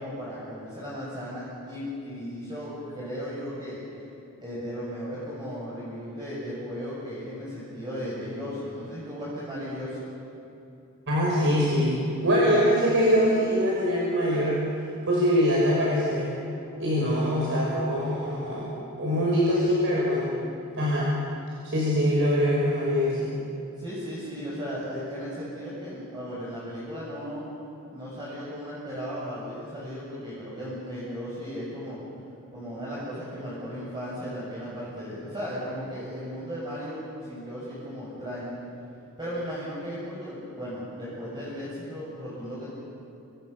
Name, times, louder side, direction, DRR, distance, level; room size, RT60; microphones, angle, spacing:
voice 1, 0.0-3.8 4.4-10.0 23.8-27.4 27.9-32.0 32.5-38.5 39.2-42.7, equal, 20° right, -8 dB, 7.7 m, -36 dB
voice 2, 11.1-14.6 15.1-16.3 16.8-18.7 19.0-20.3 20.8-21.1 21.6-23.3, equal, 60° right, -5 dB, 6.4 m, -23 dB
30.0 x 28.0 x 7.0 m, 2.9 s
head